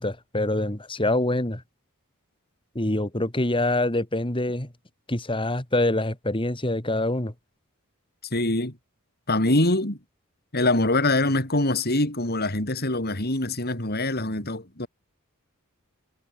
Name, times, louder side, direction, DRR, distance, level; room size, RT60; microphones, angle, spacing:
voice 1, 0.0-1.6 2.7-4.7 5.1-7.3, left 1 dB, 25° left, 2.6 m, -25 dB
voice 2, 8.3-8.8 9.3-10.0 10.5-14.9, left 2 dB, 45° left, 5.9 m, -24 dB
head